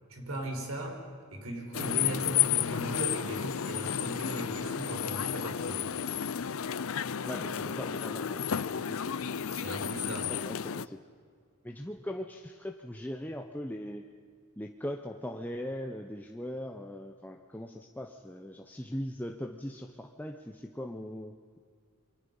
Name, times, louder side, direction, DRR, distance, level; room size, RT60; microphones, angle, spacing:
voice 1, 0.1-1.0 1.3-5.9 9.5-10.4, right 1 dB, 75° right, 1 dB, 5.2 m, -38 dB
sound 1, 1.7-10.9, left 9 dB, 65° left, 0.6 m, -32 dB
voice 2, 7.2-9.2 10.3-11.0 11.6-14.0 14.6-21.6, equal, 10° left, 3 dB, 0.8 m, -40 dB
28.5 x 23.5 x 5.6 m, 2.2 s
head